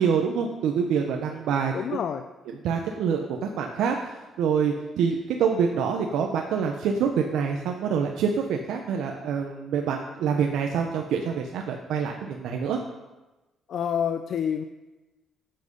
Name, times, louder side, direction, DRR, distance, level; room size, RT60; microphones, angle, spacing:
voice 1, 0.0-1.7 2.6-4.0 4.4-12.8, right 6 dB, 85° right, 2 dB, 1.1 m, -26 dB
voice 2, 1.7-2.3 13.7-14.6, left 8 dB, 65° left, 8 dB, 0.7 m, -28 dB
14.5 x 9.0 x 5.5 m, 1.1 s
cardioid pair, 90°, 0 cm